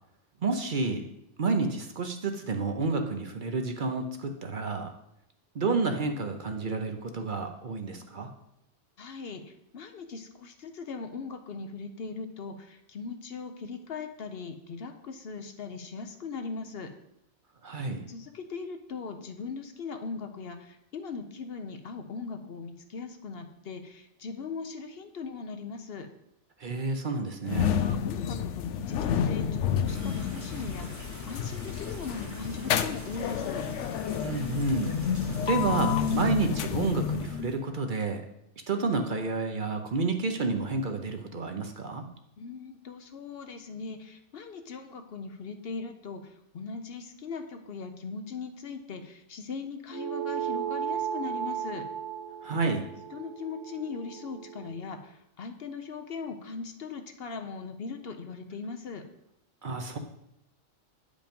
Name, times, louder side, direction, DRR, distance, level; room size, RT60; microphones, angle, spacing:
voice 1, 0.4-1.1 1.4-4.9 5.5-8.3 17.6-18.1 26.6-27.8 34.2-34.9 35.5-38.2 38.7-42.1 52.4-52.8 59.6-60.0, right 3 dB, 50° right, 5 dB, 0.8 m, -30 dB
voice 2, 9.0-16.9 18.1-26.1 27.8-33.7 42.4-51.8 53.1-59.0, left 4 dB, 60° left, 7 dB, 0.9 m, -39 dB
sound 1, 27.4-37.6, left 8 dB, 85° left, 0.9 m, -30 dB
sound 2, 29.8-36.2, right 1 dB, 15° right, 1.1 m, -45 dB
sound 3, 49.9-54.7, right 8 dB, 90° right, 2.2 m, -35 dB
8.9 x 5.2 x 5.2 m, 0.81 s
omnidirectional pair, 1.2 m